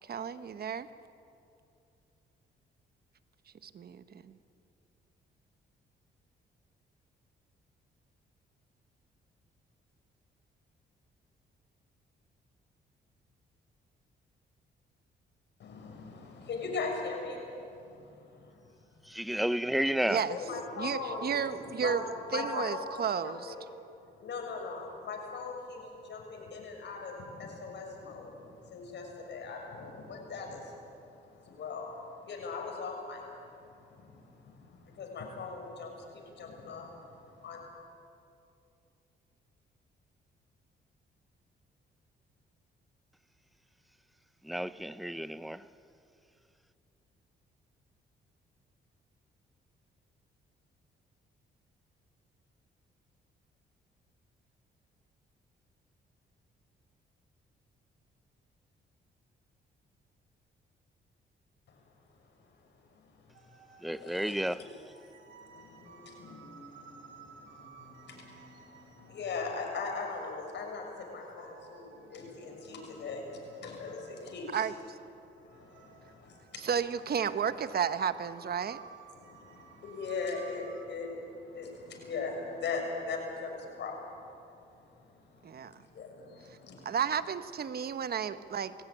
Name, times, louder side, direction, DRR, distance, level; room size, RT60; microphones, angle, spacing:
voice 1, 0.0-0.9 3.6-4.4 20.1-20.4 20.8-22.0 22.3-23.5 74.5-75.0 76.6-78.8 85.4-85.8 86.8-88.7, right 7 dB, 55° right, 1.1 m, -32 dB
voice 2, 15.6-18.7 19.0-19.1 20.1-21.4 21.7-21.9 22.3-23.6 24.0-37.6 61.7-61.8 62.6-64.7 65.1-74.6 75.3-76.7 79.1-86.9, left 4 dB, 65° left, 6.2 m, -41 dB
voice 3, 19.1-20.2 44.4-45.7 63.8-64.6, right 1 dB, ahead, 0.7 m, -31 dB
sound 1, 63.3-80.9, right 7 dB, 75° right, 2.3 m, -56 dB
20.5 x 16.5 x 9.9 m
cardioid pair, 70°, 19 cm